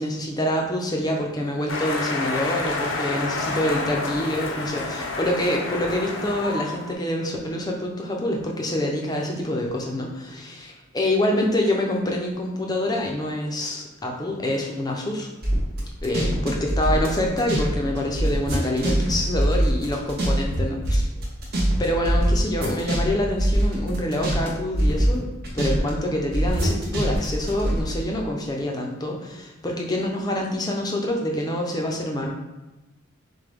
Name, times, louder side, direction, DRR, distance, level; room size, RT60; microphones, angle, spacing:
voice 1, 0.0-15.3 16.0-21.0 21.8-25.3 25.5-32.3, left 1 dB, 20° left, 0 dB, 0.6 m, -26 dB
sound 1, 1.7-6.9, left 3 dB, 75° left, 0.8 m, -29 dB
sound 2, 15.4-17.7 18.0-20.6 20.8-24.5 24.7-25.9 26.3-27.8, right 1 dB, 50° right, 1.1 m, -23 dB
6.7 x 2.2 x 3.5 m, 1.0 s
head